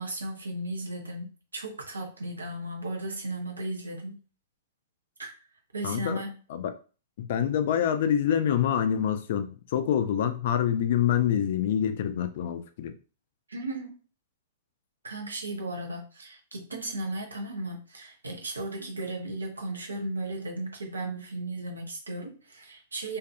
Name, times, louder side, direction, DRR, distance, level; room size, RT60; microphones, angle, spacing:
voice 1, 0.0-4.2 5.2-5.3 5.7-6.4 13.5-14.0 15.0-23.2, right 1 dB, 75° right, 3 dB, 0.7 m, -35 dB
voice 2, 5.8-6.2 6.5-6.7 7.2-12.9, left 9 dB, 50° left, 9 dB, 0.3 m, -26 dB
2.6 x 2.4 x 2.4 m, 0.36 s
figure-of-eight pair, 105°, 0 cm